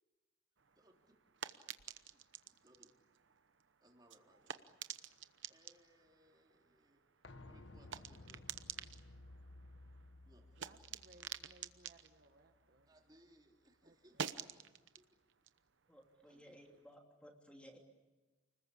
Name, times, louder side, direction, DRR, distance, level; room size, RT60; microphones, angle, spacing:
sound 1, 0.6-13.4 13.6-16.9, right 8 dB, 65° right, 0.9 m, -51 dB
voice 1, 0.7-1.4 2.1-3.0 3.8-4.8 5.5-7.0 7.5-8.6 10.2-10.9 12.9-15.2 16.3-16.8, right 1 dB, 20° right, 1 dB, 3.4 m, -69 dB
sound 2, 7.2-12.9 13.2-13.3, left 2 dB, 65° left, 1.2 m, -58 dB
voice 2, 10.6-12.9 13.8-14.6, right 1 dB, 50° right, 5 dB, 1.4 m, -66 dB
voice 3, 15.9-17.8, equal, 5° left, 1 dB, 2.8 m, -59 dB
29.5 x 20.5 x 8.6 m, 1.2 s
head